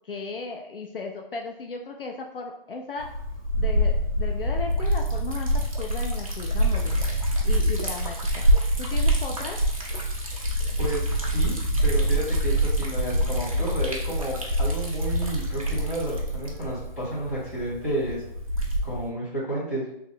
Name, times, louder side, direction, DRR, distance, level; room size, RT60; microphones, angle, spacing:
voice 1, 0.0-3.1 3.6-5.5 5.8-7.0 7.4-8.4 8.8-9.6, left 4 dB, 70° left, 2 dB, 0.5 m, -36 dB
Liquid, 3.0-19.1, equal, 35° right, 0.5 m, -25 dB
voice 2, 10.8-11.5 11.8-18.2 18.8-19.8, right 1 dB, 15° left, -13 dB, 1.1 m, -31 dB
3.0 x 2.1 x 3.7 m, 0.77 s
hypercardioid pair, 180°, 29 cm